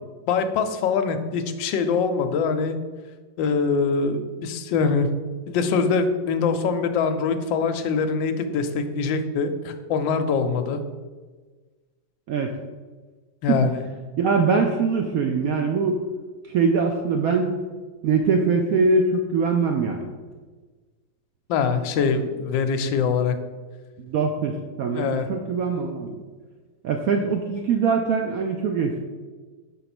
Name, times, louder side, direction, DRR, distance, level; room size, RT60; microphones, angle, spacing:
voice 1, 0.3-2.8 3.4-5.1 5.5-10.8 13.4-13.8 21.5-23.4 24.9-25.3, left 5 dB, 80° left, 8 dB, 1.3 m, -23 dB
voice 2, 14.2-16.0 16.5-17.5 18.0-20.1 24.0-26.2 26.8-29.0, right 4 dB, 85° right, 3 dB, 0.7 m, -22 dB
5.6 x 3.9 x 5.9 m, 1.4 s
omnidirectional pair, 2.1 m